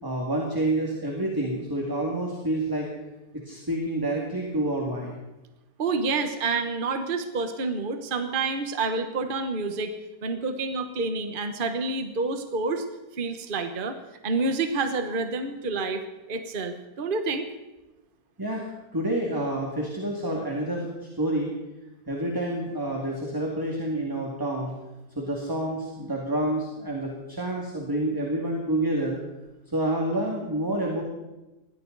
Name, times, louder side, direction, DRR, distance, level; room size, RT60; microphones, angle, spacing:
voice 1, 0.0-2.9 3.5-5.2 18.4-20.9 21.2-21.5 22.1-24.7 25.2-29.2 29.7-31.0, right 1 dB, 10° right, -1 dB, 2.3 m, -28 dB
voice 2, 5.8-9.9 10.2-12.8 13.1-14.0 14.2-16.0 16.3-17.5, right 3 dB, 35° right, 7 dB, 1.2 m, -28 dB
21.0 x 16.0 x 4.0 m, 1.0 s
omnidirectional pair, 1.8 m